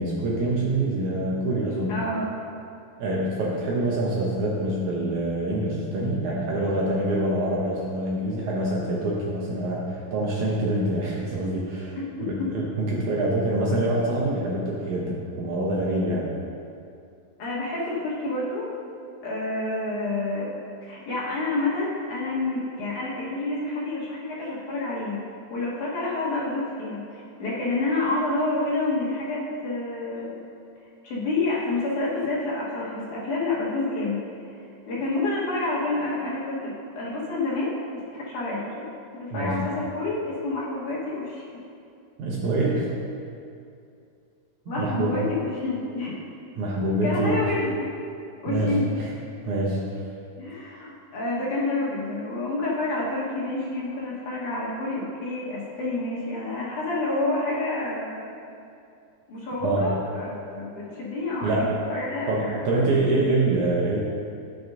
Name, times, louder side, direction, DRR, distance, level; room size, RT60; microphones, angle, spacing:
voice 1, 0.0-2.0 3.0-16.3 39.3-39.6 42.2-42.9 44.7-45.2 46.6-47.5 48.5-49.1 49.5-50.0 59.6-59.9 61.4-61.8 62.3-64.0, right 1 dB, 70° right, -4 dB, 2.0 m, -25 dB
voice 2, 1.9-2.4 12.0-12.5 17.4-18.7 19.2-20.5 20.8-25.2 25.5-30.5 31.0-34.2 34.9-38.8 39.1-41.4 44.7-46.2 47.0-47.9 48.4-48.9 50.4-58.3 59.3-62.7, left 2 dB, 65° left, -6 dB, 2.6 m, -28 dB
14.0 x 6.4 x 2.6 m, 2.5 s
omnidirectional pair, 4.1 m